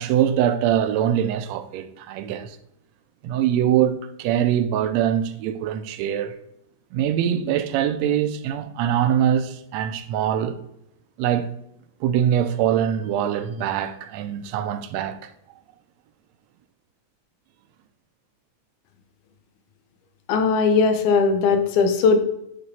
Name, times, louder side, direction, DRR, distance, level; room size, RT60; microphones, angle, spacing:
voice 1, 0.0-2.6 3.2-6.3 6.9-10.6 11.2-11.5 12.0-15.3, right 10 dB, 80° right, 1.7 m, -23 dB
voice 2, 20.3-22.2, left 4 dB, 85° left, 2.3 m, -19 dB
9.1 x 3.4 x 4.1 m
omnidirectional pair, 3.4 m